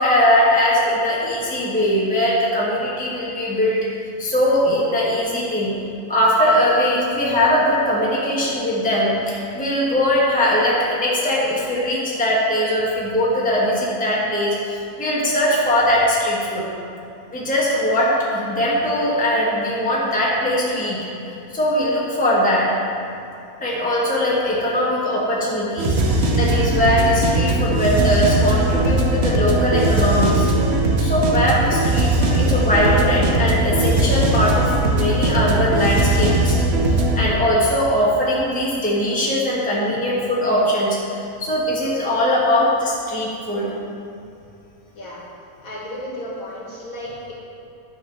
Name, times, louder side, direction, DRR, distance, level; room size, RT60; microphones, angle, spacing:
voice 1, 0.0-3.9 4.2-5.7 6.1-16.7 17.3-21.0 21.3-22.7 23.6-30.5 31.0-36.6 37.2-41.0 41.4-43.7, left 1 dB, 5° left, -6 dB, 1.1 m, -20 dB
sound 1, 25.8-37.2, right 2 dB, 50° right, 1.0 m, -19 dB
voice 2, 45.6-47.3, left 1 dB, 60° left, -5 dB, 2.0 m, -33 dB
9.9 x 3.9 x 5.7 m, 2.7 s
omnidirectional pair, 1.6 m